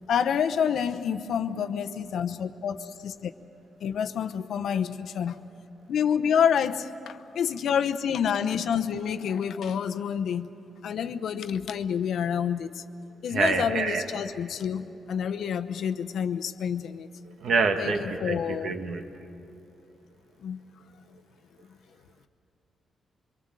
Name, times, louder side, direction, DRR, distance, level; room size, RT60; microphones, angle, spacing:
voice 1, 0.1-3.3 3.8-5.4 5.9-10.5 10.8-12.8 13.2-17.1 17.8-18.8 20.4-20.6, left 8 dB, 70° left, 8 dB, 0.8 m, -28 dB
voice 2, 13.3-14.0 17.4-19.0, right 4 dB, 60° right, 5 dB, 1.8 m, -26 dB
24.5 x 23.5 x 7.6 m, 2.7 s
wide cardioid pair, 155°, 0 cm